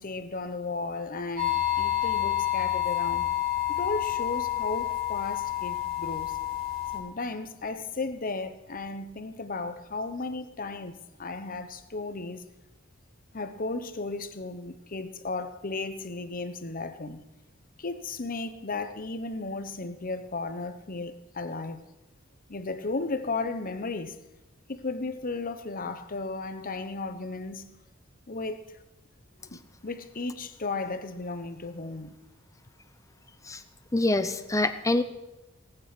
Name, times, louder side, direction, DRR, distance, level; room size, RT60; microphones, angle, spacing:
voice 1, 0.0-3.3 3.7-6.4 6.9-12.4 13.3-17.2 17.8-21.8 22.5-24.2 24.7-27.7 28.3-28.6 29.8-32.2, left 3 dB, 45° left, 1.0 m, -35 dB
sound 1, 1.4-7.0, left 13 dB, 85° right, 4.4 m, -29 dB
voice 2, 33.9-35.0, left 2 dB, 15° left, 0.8 m, -25 dB
18.5 x 9.1 x 6.1 m
head